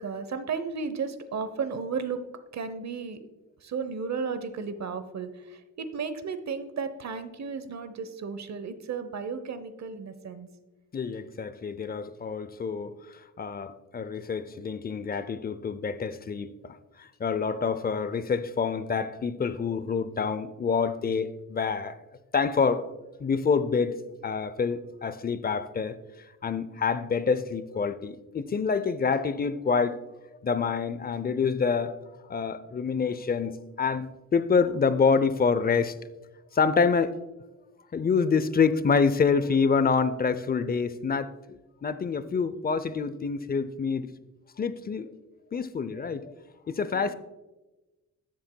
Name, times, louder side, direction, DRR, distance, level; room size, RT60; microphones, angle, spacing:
voice 1, 0.0-2.2 2.5-3.2 3.6-10.5 46.9-47.1, right 5 dB, 55° right, 0.9 m, -34 dB
voice 2, 10.9-13.0 13.4-22.0 22.3-22.8 23.2-26.0 26.4-30.0 30.4-32.0 32.3-35.9 36.5-37.1 37.9-44.1 44.6-45.1 45.5-46.3 46.7-47.1, left 5 dB, 30° left, 0.5 m, -27 dB
13.0 x 7.4 x 2.3 m
cardioid pair, 80°, 32 cm